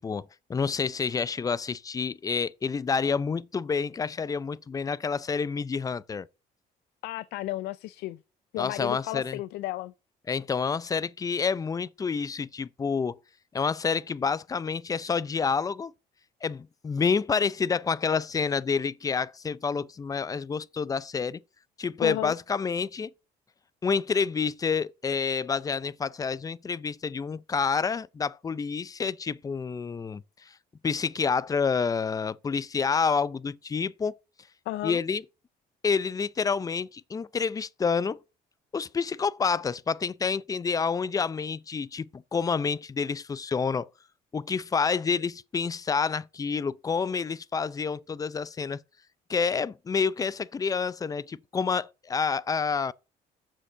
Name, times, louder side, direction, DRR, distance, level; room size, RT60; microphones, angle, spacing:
voice 1, 0.0-6.3 8.6-9.4 10.3-13.1 13.5-15.9 16.4-21.4 21.8-23.1 23.8-30.5 30.8-34.2 34.8-35.2 35.8-38.2 38.7-43.9 44.3-48.8 49.3-52.9, left 5 dB, 20° left, 0.4 m, -28 dB
voice 2, 7.0-8.2 8.5-9.9 22.0-22.3 34.7-35.0, left 16 dB, 85° left, 0.5 m, -33 dB
7.4 x 6.5 x 6.4 m
cardioid pair, 110°, 17 cm